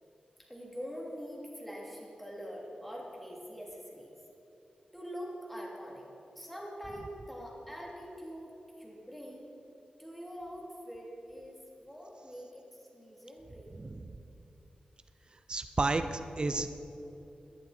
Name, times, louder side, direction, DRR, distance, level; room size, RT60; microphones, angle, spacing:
voice 1, 0.5-4.1 4.9-6.0 6.3-9.5 10.0-13.7, equal, 5° left, -3 dB, 3.1 m, -44 dB
voice 2, 15.5-16.7, right 3 dB, 35° right, 9 dB, 0.7 m, -31 dB
18.0 x 10.5 x 4.4 m, 2.9 s
wide cardioid pair, 75°, 3 cm